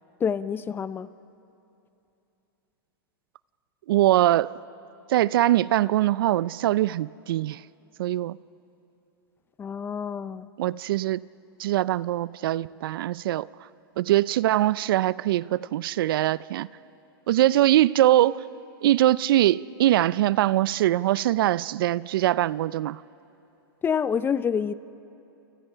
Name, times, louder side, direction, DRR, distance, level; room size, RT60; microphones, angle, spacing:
voice 1, 0.2-1.1 9.6-10.5 23.8-24.7, left 7 dB, 15° left, 0.5 m, -27 dB
voice 2, 3.9-4.5 5.1-7.6 8.0-8.4 10.6-11.2 11.6-13.5 14.0-16.7 17.3-18.4 18.8-23.0, right 14 dB, 65° right, 0.5 m, -22 dB
28.5 x 26.0 x 5.7 m
hypercardioid pair, 125°, 13 cm